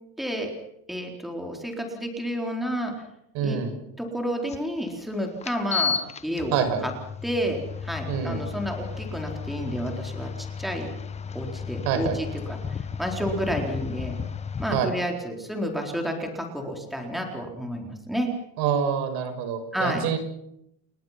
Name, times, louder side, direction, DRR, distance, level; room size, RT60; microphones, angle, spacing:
voice 1, 0.2-0.5 0.9-2.9 3.4-3.6 4.0-6.0 6.2-6.6 6.8-6.9 7.2-10.9 11.3-14.1 14.6-18.3 19.7-20.0, equal, ahead, 2 dB, 4.1 m, -30 dB
voice 2, 3.3-3.7 6.5-6.9 8.1-8.4 11.8-12.2 14.7-14.9 18.6-20.2, right 7 dB, 85° right, 8 dB, 6.3 m, -26 dB
sound 1, 4.5-4.6 5.4-14.8, left 6 dB, 15° left, 0.8 m, -33 dB
29.5 x 21.5 x 5.9 m, 0.78 s
cardioid pair, 170°, 38 cm